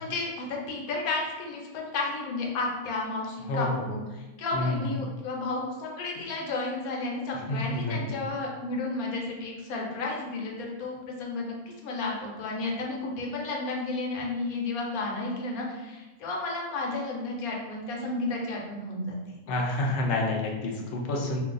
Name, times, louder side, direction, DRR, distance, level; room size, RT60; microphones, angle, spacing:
voice 1, 0.0-19.2, left 3 dB, 70° left, -1 dB, 1.1 m, -32 dB
voice 2, 3.5-3.9 4.5-4.8 7.5-8.2 19.5-21.4, left 2 dB, 90° left, -1 dB, 0.4 m, -28 dB
2.5 x 2.3 x 3.8 m, 1.1 s
omnidirectional pair, 1.7 m